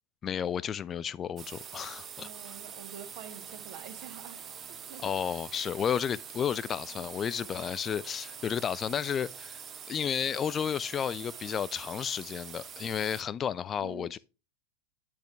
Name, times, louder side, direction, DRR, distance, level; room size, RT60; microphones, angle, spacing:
voice 1, 0.2-2.3 5.0-9.6 9.9-14.2, left 8 dB, 25° left, 0.3 m, -32 dB
sound 1, 1.4-13.2, right 7 dB, 25° right, 0.9 m, -45 dB
voice 2, 2.1-5.3 13.8-14.2, right 9 dB, 45° right, 1.6 m, -48 dB
9.9 x 6.1 x 3.3 m
figure-of-eight pair, 90°, 0 cm